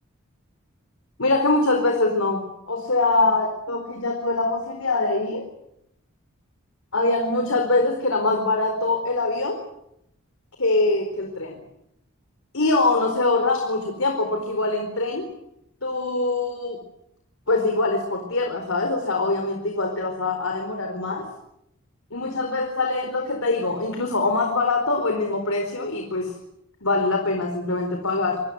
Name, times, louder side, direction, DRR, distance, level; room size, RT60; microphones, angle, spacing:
voice 1, 1.2-5.5 6.9-9.6 10.6-11.6 12.5-15.3 15.8-16.8 17.5-21.3 22.1-26.3 26.8-28.4, left 2 dB, 80° left, 4 dB, 4.3 m, -23 dB
27.5 x 22.0 x 8.0 m, 0.80 s
head